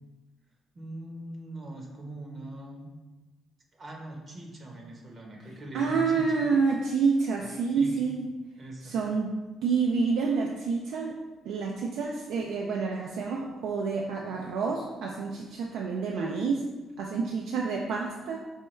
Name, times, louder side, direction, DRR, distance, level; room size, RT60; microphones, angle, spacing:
voice 1, 0.7-2.9 3.8-6.3 7.4-8.1 8.6-9.0, right 1 dB, 45° right, 0 dB, 0.7 m, -42 dB
voice 2, 5.7-8.3 8.8-16.7 17.0-18.4, right 4 dB, 85° right, -1 dB, 0.3 m, -28 dB
4.4 x 2.2 x 3.1 m, 1.2 s
cardioid pair, 90°, 0 cm